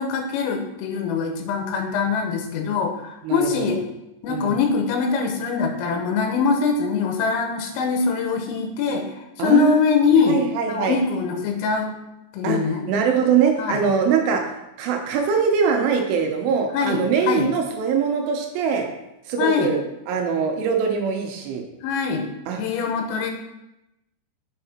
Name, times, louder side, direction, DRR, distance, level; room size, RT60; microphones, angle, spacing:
voice 1, 0.0-3.8 4.2-9.1 9.4-10.4 10.7-11.9 12.3-12.8 13.6-13.8 16.7-17.5 19.4-19.7 21.8-22.3 22.6-23.3, left 5 dB, 90° left, 3 dB, 3.6 m, -22 dB
voice 2, 3.2-3.8 4.3-4.6 9.4-11.0 12.4-14.4 14.8-18.9 19.3-19.8 20.1-21.6 22.5-22.6, right 6 dB, 85° right, 3 dB, 3.2 m, -22 dB
9.0 x 5.8 x 4.3 m, 0.90 s
omnidirectional pair, 5.8 m